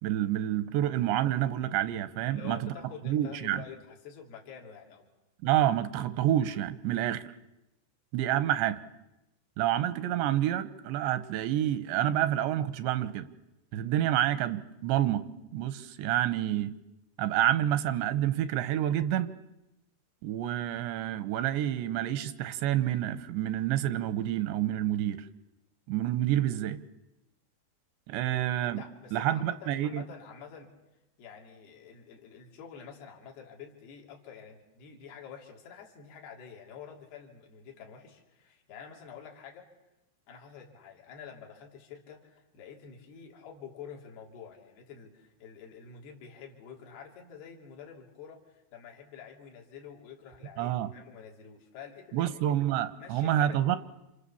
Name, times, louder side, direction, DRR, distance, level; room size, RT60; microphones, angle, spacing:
voice 1, 0.0-2.7 3.0-3.6 5.4-7.2 8.1-8.8 9.6-13.3 13.7-15.3 15.5-16.7 17.2-19.3 20.2-25.2 25.9-26.8 28.1-28.8 29.1-30.0 50.6-50.9 52.1-53.8, right 12 dB, 90° right, 12 dB, 3.4 m, -28 dB
voice 2, 2.2-5.1 28.6-30.7 31.2-39.7 40.3-52.4 53.0-53.6, left 7 dB, 65° left, 1 dB, 4.8 m, -48 dB
29.5 x 27.5 x 7.2 m, 0.93 s
omnidirectional pair, 4.9 m